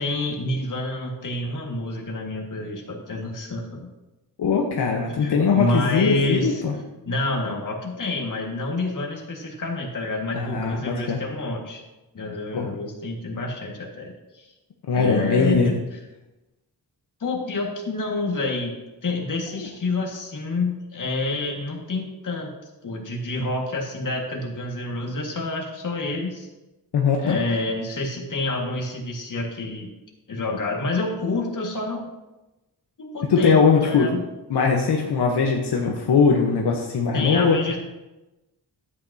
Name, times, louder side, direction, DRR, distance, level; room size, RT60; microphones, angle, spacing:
voice 1, 0.0-3.9 5.2-6.6 7.0-11.8 12.1-14.5 14.9-15.7 17.2-18.7 19.0-22.5 22.8-26.5 27.2-29.9 30.3-32.1 33.0-34.2 37.1-37.8, left 2 dB, 50° left, 0 dB, 1.9 m, -28 dB
voice 2, 4.4-6.7 10.3-11.2 12.5-12.7 14.9-15.7 26.9-27.4 33.3-34.1 34.5-37.6, left 5 dB, 80° left, 0 dB, 1.1 m, -20 dB
12.5 x 8.5 x 2.8 m, 1.0 s
wide cardioid pair, 125°, 40 cm